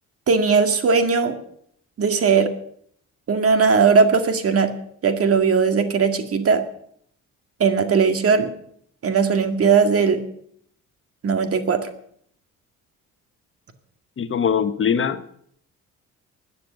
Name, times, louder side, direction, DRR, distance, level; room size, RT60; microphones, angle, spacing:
voice 1, 0.3-1.4 2.0-2.5 3.3-4.7 5.0-6.6 7.6-8.5 9.0-10.2 11.2-11.9, right 5 dB, 50° right, 8 dB, 2.0 m, -18 dB
voice 2, 14.2-15.3, left 7 dB, 45° left, 11 dB, 1.2 m, -22 dB
13.0 x 9.7 x 9.0 m, 0.66 s
cardioid pair, 90°, 30 cm